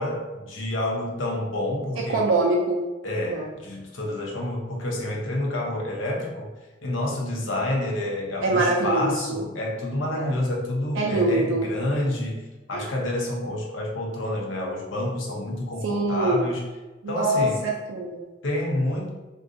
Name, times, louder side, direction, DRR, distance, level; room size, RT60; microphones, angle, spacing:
voice 1, 0.0-2.3 3.0-6.5 6.8-12.4 12.7-16.6 17.1-17.7 18.4-19.1, left 1 dB, 75° left, -2 dB, 0.7 m, -28 dB
voice 2, 2.0-2.8 3.3-3.5 8.4-9.4 10.1-10.3 11.0-11.7 12.7-12.9 15.8-16.4 17.0-18.2, right 2 dB, 85° right, -1 dB, 0.4 m, -24 dB
2.5 x 2.3 x 3.7 m, 1.2 s
head